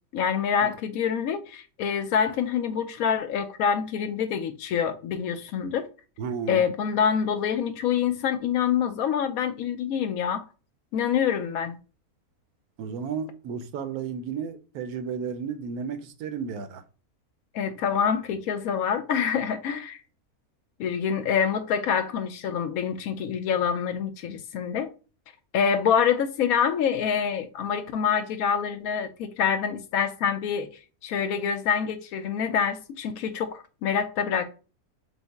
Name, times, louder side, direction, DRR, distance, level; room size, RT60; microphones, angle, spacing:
voice 1, 0.1-5.9 6.5-10.4 10.9-11.8 17.5-20.0 20.8-24.9 25.5-30.7 31.0-34.5, left 7 dB, 75° left, 1.0 m, -26 dB
voice 2, 6.2-6.6 12.8-16.8, right 6 dB, 80° right, 1.1 m, -33 dB
5.3 x 2.1 x 3.4 m
omnidirectional pair, 1.6 m